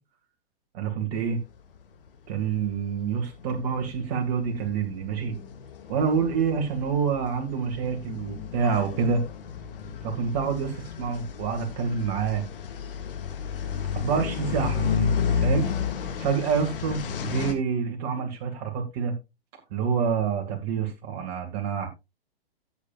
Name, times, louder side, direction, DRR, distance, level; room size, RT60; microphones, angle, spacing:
voice 1, 0.7-1.4 2.3-5.3 5.9-9.2 10.0-12.4 13.9-15.7 16.2-19.1 19.7-21.9, right 6 dB, 40° right, 2.3 m, -27 dB
sound 1, 2.0-2.1 2.4-17.5, left 6 dB, 60° left, 2.5 m, -32 dB
15.5 x 7.5 x 2.5 m
figure-of-eight pair, 115°, 30 cm